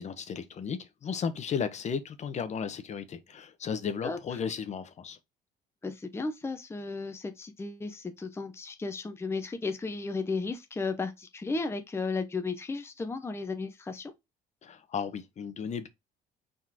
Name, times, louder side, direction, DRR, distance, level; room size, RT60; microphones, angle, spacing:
voice 1, 0.0-5.2 14.6-15.9, left 6 dB, 45° left, 0.9 m, -34 dB
voice 2, 5.8-14.1, left 3 dB, 15° left, 0.7 m, -34 dB
4.4 x 3.8 x 2.8 m
cardioid pair, 110°, 17 cm